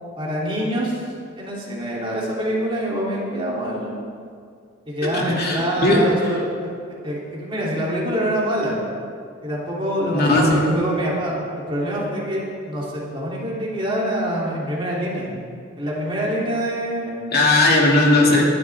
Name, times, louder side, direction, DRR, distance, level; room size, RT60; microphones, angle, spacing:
voice 1, 0.2-1.0 1.3-3.9 4.8-6.7 7.0-8.8 9.4-15.3 15.8-17.3, equal, 25° right, -5 dB, 3.1 m, -25 dB
voice 2, 5.0-6.3 10.1-10.9 17.3-18.4, left 2 dB, 50° left, -2 dB, 2.5 m, -18 dB
20.0 x 12.0 x 3.6 m, 2.2 s
head